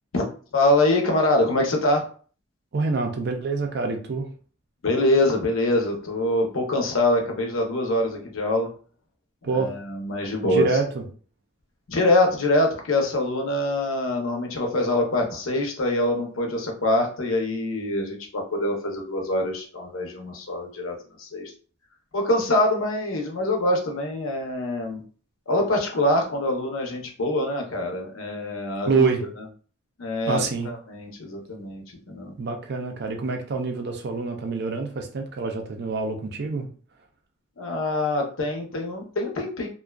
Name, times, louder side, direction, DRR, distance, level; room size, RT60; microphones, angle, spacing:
voice 1, 0.5-2.0 4.8-8.7 9.5-10.7 11.9-21.5 22.1-25.0 25.5-29.4 30.0-32.3 37.6-39.7, left 1 dB, 75° left, 1 dB, 0.7 m, -24 dB
voice 2, 2.7-4.3 9.4-9.7 10.4-11.0 28.9-29.2 30.3-30.7 32.4-36.7, right 4 dB, 50° right, 4 dB, 0.5 m, -26 dB
2.5 x 2.2 x 2.2 m, 0.41 s
head